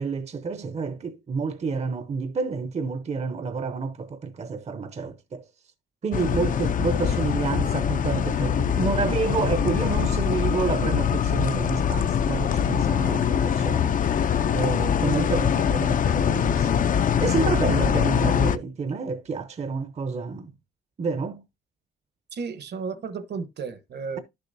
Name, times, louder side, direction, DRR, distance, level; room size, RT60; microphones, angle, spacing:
voice 1, 0.0-5.4 6.0-16.9 17.2-20.5 21.0-21.4, right 4 dB, 35° right, 0.7 m, -29 dB
sound 1, 6.1-18.6, left 8 dB, 40° left, 0.5 m, -23 dB
voice 2, 22.3-24.2, right 5 dB, 55° right, 1.2 m, -33 dB
11.0 x 6.9 x 2.6 m
cardioid pair, 90°, 20 cm